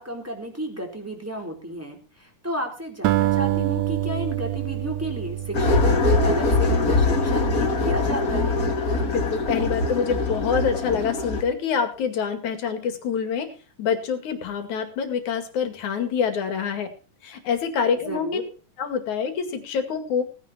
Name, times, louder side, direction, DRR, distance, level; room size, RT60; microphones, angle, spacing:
voice 1, 0.0-8.7 18.1-18.4, equal, 5° right, 1 dB, 3.6 m, -32 dB
Acoustic guitar, 3.0-7.5, right 14 dB, 75° right, 2.1 m, -27 dB
sound 1, 5.5-11.4, left 2 dB, 30° left, 2.0 m, -22 dB
voice 2, 9.0-13.5 13.8-16.9 17.2-18.3 18.8-20.2, left 6 dB, 65° left, 8 dB, 3.5 m, -26 dB
17.5 x 10.5 x 4.3 m, 0.36 s
omnidirectional pair, 3.7 m